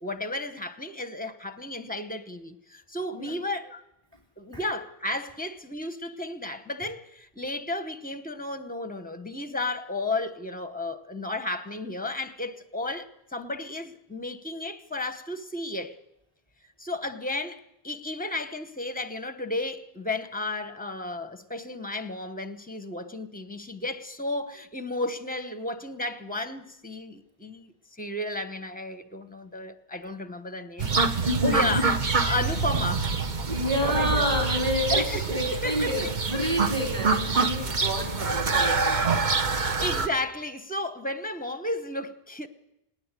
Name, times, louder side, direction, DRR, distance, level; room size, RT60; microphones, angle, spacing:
voice 1, 0.0-3.8 4.4-16.0 16.8-27.7 28.0-30.9 31.4-33.1 33.8-34.4 34.9-36.1 39.8-42.5, left 2 dB, 10° left, 0.9 m, -33 dB
sound 1, 30.8-40.1, right 4 dB, 50° right, 1.2 m, -26 dB
voice 2, 31.2-31.8 33.5-39.3, equal, 30° right, 3.0 m, -29 dB
19.5 x 19.0 x 8.2 m
omnidirectional pair, 1.0 m